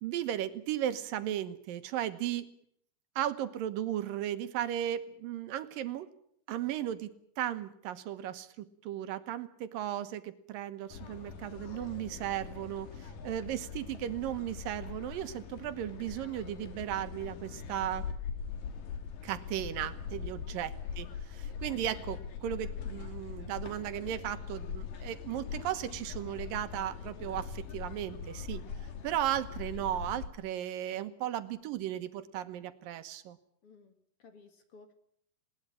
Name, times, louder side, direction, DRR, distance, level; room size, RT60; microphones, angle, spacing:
voice 1, 0.0-2.5 3.2-6.1 6.5-7.1 7.4-18.0 19.2-28.6 29.0-33.4, right 11 dB, 85° right, 11 dB, 2.9 m, -36 dB
sound 1, 10.9-30.3, left 6 dB, 80° left, 3.6 m, -42 dB
voice 2, 20.2-20.6 33.6-34.9, left 4 dB, 45° left, 8 dB, 2.6 m, -57 dB
20.0 x 19.0 x 8.8 m, 0.67 s
omnidirectional pair, 3.9 m